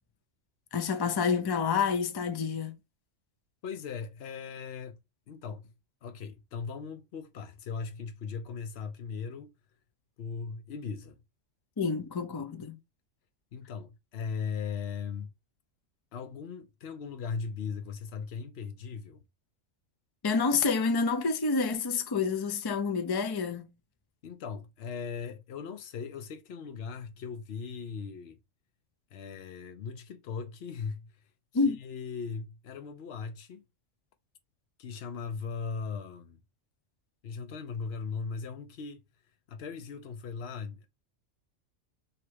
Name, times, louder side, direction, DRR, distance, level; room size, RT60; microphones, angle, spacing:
voice 1, 0.7-2.7 11.8-12.7 20.2-23.7 31.5-31.8, left 5 dB, 35° left, 0.4 m, -28 dB
voice 2, 3.6-5.0 5.3-5.7 6.0-9.5 10.2-11.2 13.5-15.3 16.1-19.2 24.2-28.4 29.1-31.1 31.7-33.6 34.8-36.4 37.2-39.1 39.5-40.9, left 5 dB, 60° left, 0.9 m, -38 dB
3.2 x 2.9 x 4.6 m
omnidirectional pair, 1.3 m